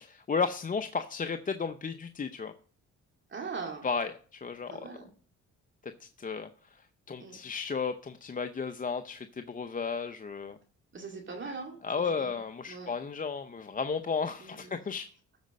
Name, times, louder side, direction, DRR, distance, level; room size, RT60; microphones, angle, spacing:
voice 1, 0.0-2.5 3.8-4.9 5.8-6.5 7.1-10.6 11.8-15.1, left 5 dB, 25° left, 8 dB, 0.7 m, -34 dB
voice 2, 3.3-3.9 4.7-5.1 7.2-7.4 10.9-12.4 12.7-12.9 14.4-14.7, right 4 dB, 40° right, 0 dB, 2.2 m, -41 dB
13.5 x 5.1 x 6.4 m, 0.43 s
cardioid pair, 90°, 30 cm